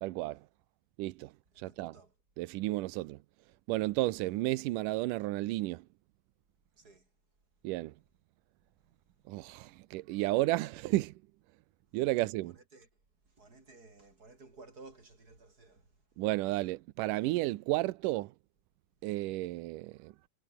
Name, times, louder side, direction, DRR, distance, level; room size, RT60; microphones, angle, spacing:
voice 1, 0.0-0.4 1.0-2.0 2.4-3.2 3.7-5.8 7.6-7.9 9.3-11.1 11.9-12.5 16.2-18.3 19.0-20.1, right 18 dB, 90° right, 1.9 m, -32 dB
voice 2, 1.5-2.2 6.8-7.1 12.2-12.9 13.2-16.2, right 3 dB, 20° right, 5.5 m, -56 dB
omnidirectional pair, 4.6 m